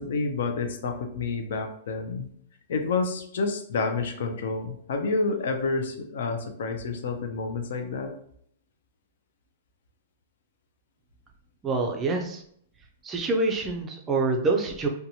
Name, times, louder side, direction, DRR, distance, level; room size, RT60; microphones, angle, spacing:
voice 1, 0.0-2.3 2.7-8.1, left 4 dB, 70° left, 6 dB, 0.4 m, -29 dB
voice 2, 11.6-12.4 13.0-14.9, right 3 dB, 15° right, 2 dB, 0.4 m, -26 dB
2.8 x 2.2 x 2.7 m, 0.66 s
hypercardioid pair, 160°, 0 cm